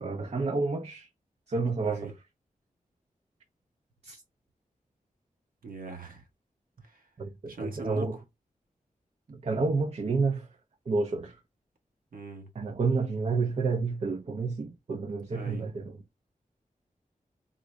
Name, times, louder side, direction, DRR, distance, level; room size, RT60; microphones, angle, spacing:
voice 1, 0.0-1.1 1.5-2.1 4.0-4.2 7.2-8.1 9.3-10.5 10.9-11.4 12.6-15.9, right 4 dB, 50° right, 0.5 m, -29 dB
voice 2, 1.8-2.1 5.6-6.3 6.8-7.1 7.5-8.2 12.1-12.5 15.3-15.7, right 3 dB, 90° right, 1.1 m, -41 dB
3.7 x 2.0 x 3.3 m
wide cardioid pair, 105°, 14 cm